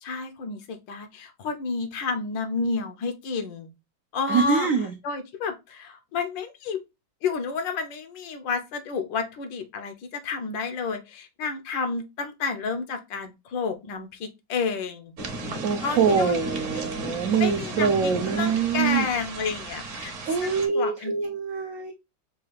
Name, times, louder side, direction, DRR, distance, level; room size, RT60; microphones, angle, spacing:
voice 1, 0.0-3.7 4.1-6.8 7.2-15.1 15.8-16.4 16.7-16.9 17.1-20.1 20.4-21.1, left 5 dB, 75° left, 1.4 m, -31 dB
voice 2, 4.3-4.9 15.6-19.0 20.3-21.9, right 6 dB, 75° right, 0.7 m, -24 dB
sound 1, 15.2-20.7, right 2 dB, 55° right, 1.0 m, -34 dB
5.5 x 2.3 x 3.1 m
omnidirectional pair, 2.0 m